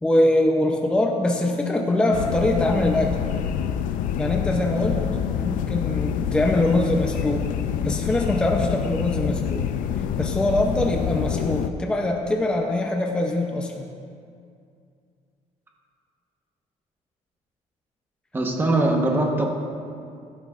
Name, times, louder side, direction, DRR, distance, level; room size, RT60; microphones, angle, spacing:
voice 1, 0.0-3.2 4.2-5.0 5.3-7.5 7.8-9.7 10.2-13.9, left 1 dB, 5° left, 2 dB, 0.6 m, -23 dB
sound 1, 2.1-11.7, left 8 dB, 70° left, 0.5 m, -26 dB
voice 2, 18.3-19.4, right 2 dB, 15° right, 1 dB, 1.1 m, -21 dB
17.0 x 12.0 x 2.4 m, 2.4 s
cardioid pair, 175°, 14 cm